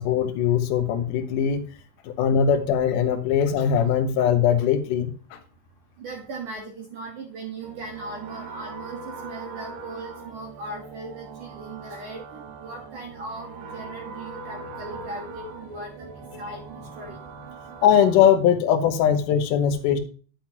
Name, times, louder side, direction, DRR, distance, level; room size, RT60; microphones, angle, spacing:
voice 1, 0.0-1.6 2.0-5.4 17.8-20.0, left 8 dB, 80° left, 6 dB, 1.9 m, -21 dB
voice 2, 6.0-16.1 16.4-17.2, right 2 dB, 60° right, 0 dB, 2.4 m, -38 dB
sound 1, 7.6-18.3, right 4 dB, 75° right, 3.2 m, -41 dB
10.5 x 7.9 x 2.9 m, 0.40 s
omnidirectional pair, 5.3 m